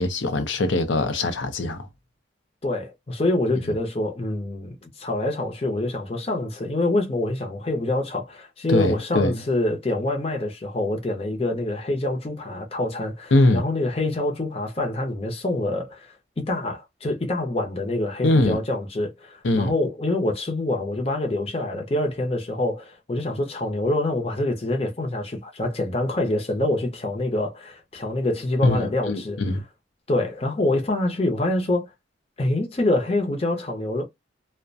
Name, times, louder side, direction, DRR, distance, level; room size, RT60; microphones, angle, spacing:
voice 1, 0.0-1.9 8.7-9.4 13.3-13.6 18.2-18.6 19.4-19.7 28.6-29.6, left 2 dB, 80° left, 0.5 m, -22 dB
voice 2, 2.6-29.4 30.1-31.9 32.4-34.1, left 2 dB, 30° left, 0.6 m, -26 dB
2.3 x 2.1 x 2.5 m
head